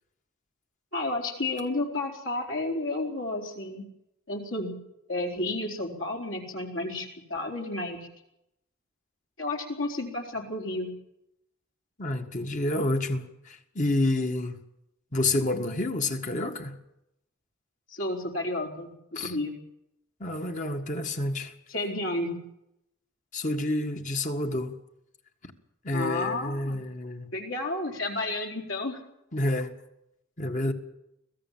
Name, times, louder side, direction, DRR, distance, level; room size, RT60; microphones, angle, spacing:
voice 1, 0.9-3.8 4.3-4.8 5.1-8.1 9.4-10.9 17.9-19.6 21.7-22.4 25.9-26.8 27.3-29.0, left 2 dB, 65° left, 4.4 m, -31 dB
voice 2, 12.0-14.6 15.1-16.8 19.2-19.4 20.2-21.5 23.3-24.7 25.8-27.3 29.3-29.7 30.4-30.7, left 2 dB, 35° left, 1.8 m, -29 dB
25.5 x 17.0 x 7.5 m
head